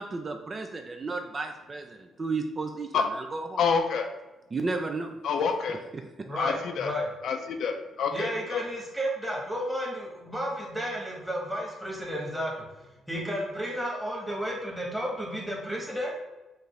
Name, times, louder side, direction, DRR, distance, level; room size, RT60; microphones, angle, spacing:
voice 1, 0.0-3.6 4.5-5.2 5.9-6.1, right 3 dB, 35° right, 5 dB, 0.4 m, -33 dB
voice 2, 3.6-4.1 5.2-5.8 6.4-6.9 7.2-8.6, left 5 dB, 70° left, 4 dB, 0.5 m, -27 dB
voice 3, 6.2-7.1 8.1-12.5 13.1-16.1, equal, 5° right, -2 dB, 1.3 m, -32 dB
5.2 x 2.5 x 3.2 m, 1.0 s
cardioid pair, 90°, 0 cm